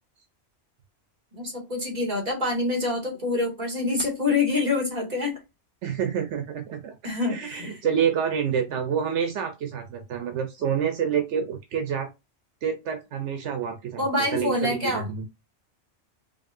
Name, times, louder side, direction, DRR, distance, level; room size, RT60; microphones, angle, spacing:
voice 1, 1.3-5.3 7.0-7.8 14.0-15.1, left 3 dB, 35° right, 2.2 m, -26 dB
voice 2, 5.8-6.9 7.3-12.1 12.6-14.0 14.3-15.3, right 8 dB, 80° right, 1.0 m, -27 dB
5.1 x 2.6 x 2.6 m
omnidirectional pair, 1.2 m